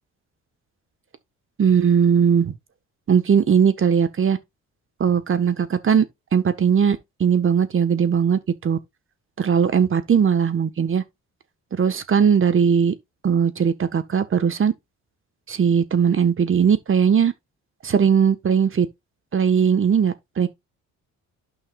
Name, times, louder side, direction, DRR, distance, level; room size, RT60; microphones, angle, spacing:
voice 1, 1.6-2.5 3.1-4.4 5.0-6.0 6.3-8.8 9.4-11.0 11.8-12.9 13.2-14.7 15.5-17.3 17.8-18.9 19.3-20.5, right 7 dB, 45° right, 1.5 m, -19 dB
12.5 x 5.6 x 2.5 m
cardioid pair, 90°, 30 cm